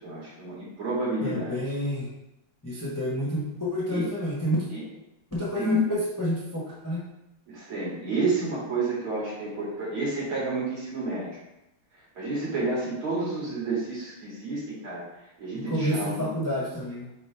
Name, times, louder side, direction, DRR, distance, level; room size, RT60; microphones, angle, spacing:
voice 1, 0.0-1.6 3.9-4.1 4.7-4.8 5.5-5.9 7.5-11.3 12.2-15.0 15.4-16.3, right 2 dB, 70° right, -7 dB, 3.3 m, -30 dB
voice 2, 1.2-2.1 2.6-4.6 5.3-7.0 15.7-17.1, equal, 20° left, -6 dB, 0.5 m, -29 dB
8.8 x 3.1 x 3.4 m, 0.89 s
omnidirectional pair, 2.4 m